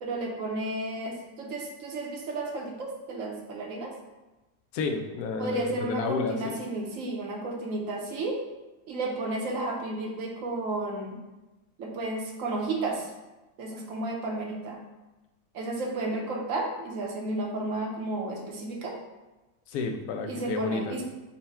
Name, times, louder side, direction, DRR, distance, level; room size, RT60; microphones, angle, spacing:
voice 1, 0.0-3.9 5.4-8.4 8.9-11.2 11.8-13.1 13.6-14.8 15.5-19.0 20.3-21.0, right 2 dB, 65° right, 0 dB, 1.1 m, -32 dB
voice 2, 4.7-6.6 19.7-21.0, left 4 dB, 80° left, 5 dB, 1.1 m, -31 dB
5.7 x 2.2 x 4.2 m, 1.1 s
omnidirectional pair, 1.6 m